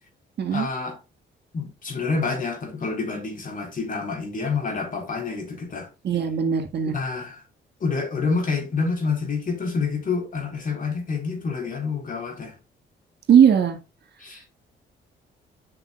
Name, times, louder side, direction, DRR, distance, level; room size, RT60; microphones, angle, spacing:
voice 1, 0.5-1.0 1.5-5.9 6.8-7.4 7.8-12.5 14.2-14.5, left 4 dB, 45° left, 3.7 m, -28 dB
voice 2, 6.0-6.9 13.3-13.8, right 8 dB, 60° right, 1.7 m, -18 dB
8.8 x 6.1 x 2.3 m
cardioid pair, 90°, 20 cm